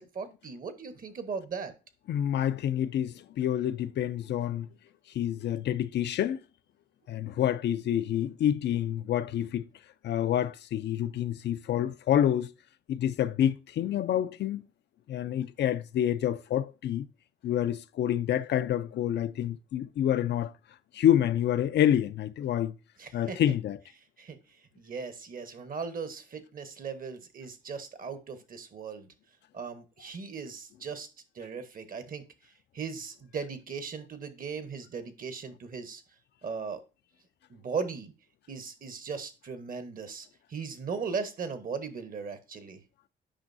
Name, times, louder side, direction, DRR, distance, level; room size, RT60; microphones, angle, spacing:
voice 1, 0.0-1.7 23.0-23.4 24.2-24.4 24.8-29.1 29.5-31.1 31.3-32.2 32.7-36.0 36.4-36.8 37.5-38.1 38.5-42.8, right 5 dB, 45° right, 1.1 m, -38 dB
voice 2, 2.1-4.7 5.1-6.4 7.1-9.6 10.0-12.5 12.9-14.6 15.1-17.1 17.4-20.5 20.9-22.8 23.1-23.8, left 10 dB, 60° left, 0.4 m, -28 dB
8.8 x 5.4 x 2.6 m
cardioid pair, 90°, 20 cm